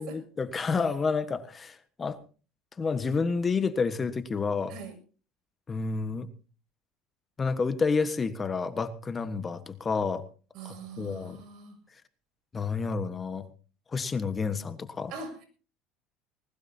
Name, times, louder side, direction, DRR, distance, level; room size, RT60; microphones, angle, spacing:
voice 1, 0.0-2.2 2.8-4.7 5.7-6.3 7.4-10.2 10.6-11.4 12.5-13.5 13.9-15.1, left 4 dB, 25° left, 11 dB, 1.4 m, -29 dB
voice 2, 10.5-11.8 15.1-15.5, right 5 dB, 60° right, 7 dB, 7.1 m, -42 dB
20.0 x 19.5 x 2.8 m, 0.37 s
supercardioid pair, 105°, 0 cm